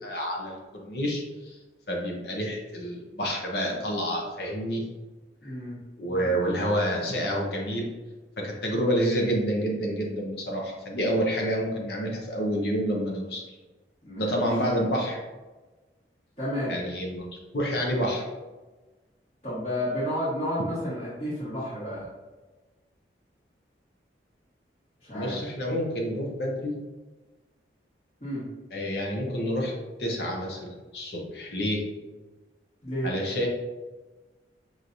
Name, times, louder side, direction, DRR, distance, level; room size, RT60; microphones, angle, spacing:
voice 1, 0.0-1.6 1.9-4.8 5.4-5.5 6.0-7.9 8.4-13.4 14.2-15.2 16.7-18.2 25.1-26.8 28.7-29.7 30.0-30.7 30.9-31.8 33.0-33.5, equal, 65° left, -1 dB, 0.8 m, -28 dB
voice 2, 5.4-5.8 14.0-14.5 16.4-16.7 19.4-22.1 25.0-25.4 28.2-28.5 32.8-33.1, equal, 40° left, -12 dB, 1.3 m, -31 dB
5.4 x 3.1 x 2.6 m, 1.2 s
head